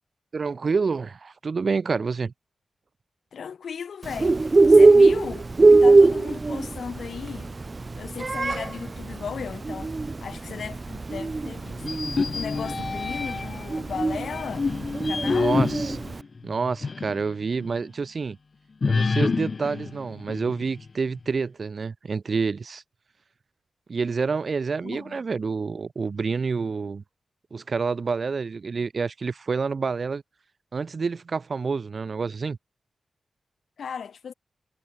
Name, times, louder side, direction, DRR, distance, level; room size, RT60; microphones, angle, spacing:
voice 1, 0.3-2.3 15.2-16.0 16.4-18.4 18.8-22.8 23.9-27.0 27.5-30.2 30.7-32.6, right 4 dB, 45° right, 6.4 m, -28 dB
voice 2, 3.3-7.5 8.0-11.9 12.3-14.7 14.9-15.5 24.8-25.2 33.8-34.3, left 7 dB, 75° left, 7.2 m, -36 dB
Bird, 4.0-16.2, right 3 dB, 30° right, 1.5 m, -20 dB
sound 1, 11.8-13.7 14.2-17.2 17.6-17.7 18.8-20.9, left 4 dB, 40° left, 1.9 m, -27 dB
wide cardioid pair, 140°, 0 cm